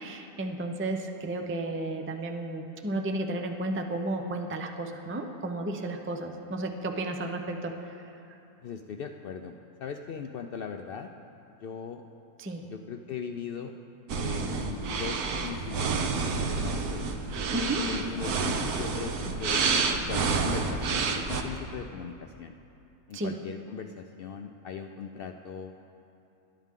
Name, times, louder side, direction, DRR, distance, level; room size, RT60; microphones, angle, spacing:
voice 1, 0.0-8.4 12.4-12.7 17.5-17.9 23.1-23.4, right 2 dB, 15° right, 4 dB, 0.4 m, -33 dB
voice 2, 8.6-11.1 11.6-12.0 12.7-13.7 14.2-16.0 16.4-17.1 17.9-19.6 19.9-22.5 23.1-25.7, left 6 dB, 85° left, 5 dB, 0.5 m, -39 dB
sound 1, 14.1-21.4, right 4 dB, 85° right, 1.4 m, -29 dB
21.0 x 11.5 x 3.7 m, 2.7 s
omnidirectional pair, 1.6 m